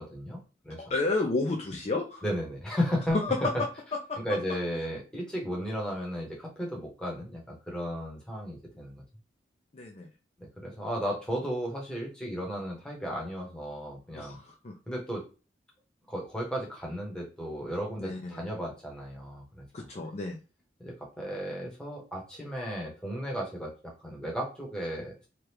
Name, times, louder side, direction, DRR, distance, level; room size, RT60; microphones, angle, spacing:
voice 1, 0.0-0.8 2.2-3.5 4.2-9.0 10.4-14.4 14.9-15.2 16.1-19.9 20.8-25.1, equal, 5° left, -3 dB, 0.9 m, -34 dB
voice 2, 0.8-2.2 3.1-3.5 4.1-4.2 9.7-10.1 14.1-14.7 18.0-18.4 19.7-20.4, left 3 dB, 35° left, 1 dB, 0.4 m, -31 dB
2.9 x 2.3 x 3.3 m, 0.32 s
head